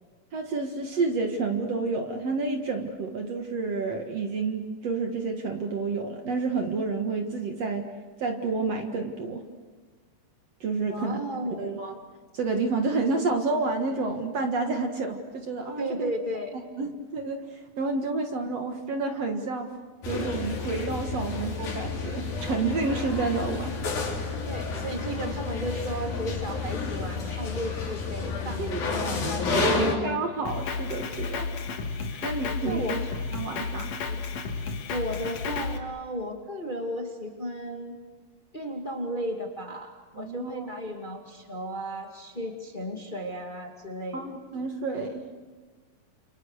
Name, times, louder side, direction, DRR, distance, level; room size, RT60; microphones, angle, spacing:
voice 1, 0.3-7.9 8.2-9.4 10.6-11.2 11.6-11.9 12.3-16.1 16.5-19.7 20.1-23.8 28.6-29.0 29.8-31.4 32.2-33.0 33.3-33.9 40.1-40.7 44.1-45.2, right 3 dB, 55° right, 4 dB, 2.5 m, -29 dB
voice 2, 10.8-11.8 15.8-16.5 21.2-21.3 24.5-29.9 31.4-31.5 32.1-32.3 32.6-33.1 34.1-34.2 34.9-38.0 38.5-44.3, equal, 15° left, 1 dB, 2.1 m, -34 dB
sound 1, 20.0-29.9, left 3 dB, 85° left, 5.5 m, -30 dB
Drum kit, 30.5-35.8, left 4 dB, 55° left, 2.8 m, -32 dB
29.5 x 29.0 x 6.7 m, 1.4 s
omnidirectional pair, 4.0 m